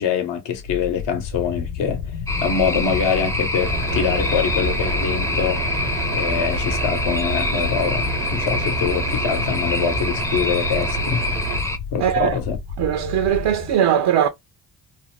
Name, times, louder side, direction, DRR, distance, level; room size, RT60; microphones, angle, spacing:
voice 1, 0.0-2.1 2.4-11.2 11.9-12.6, left 6 dB, 60° left, 0.9 m, -24 dB
sound 1, 0.5-13.7, left 5 dB, 85° left, 0.7 m, -31 dB
sound 2, 2.3-11.8, left 2 dB, 5° left, 0.5 m, -26 dB
sound 3, 3.6-11.6, right 5 dB, 85° right, 1.0 m, -29 dB
voice 2, 12.0-12.3 12.8-14.3, right 10 dB, 60° right, 0.6 m, -19 dB
2.5 x 2.1 x 3.0 m
supercardioid pair, 55°, 48 cm